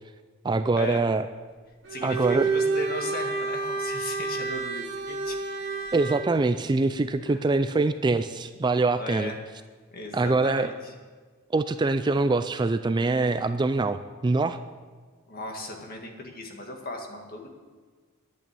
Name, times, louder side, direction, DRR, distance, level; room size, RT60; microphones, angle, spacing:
voice 1, 0.4-1.3 2.0-2.5 5.9-9.3 10.1-10.7 11.5-14.6, right 3 dB, 20° right, 10 dB, 0.3 m, -24 dB
Bowed string instrument, 1.8-6.3, right 4 dB, 60° right, 2.0 m, -29 dB
voice 2, 1.9-5.4 7.2-7.4 9.0-9.4 9.9-10.9 15.3-17.5, left 1 dB, 45° left, 2 dB, 1.9 m, -37 dB
11.0 x 8.8 x 8.9 m, 1.5 s
head